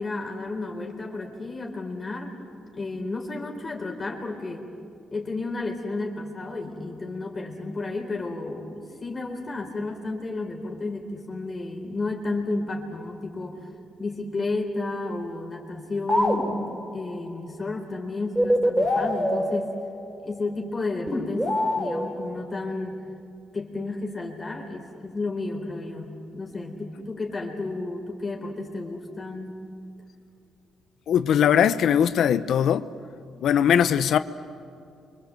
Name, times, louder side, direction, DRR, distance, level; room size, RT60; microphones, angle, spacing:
voice 1, 0.0-2.4 2.7-4.7 5.1-13.7 14.0-19.7 20.2-23.0 23.5-29.6, left 2 dB, 30° left, 3.9 m, -32 dB
sound 1, 16.1-16.9 18.4-20.3 21.1-22.4, equal, 10° right, 5.1 m, -25 dB
voice 2, 31.1-32.9 33.4-34.2, left 9 dB, 70° left, 0.8 m, -20 dB
29.0 x 25.0 x 7.8 m
cardioid pair, 90°, 0 cm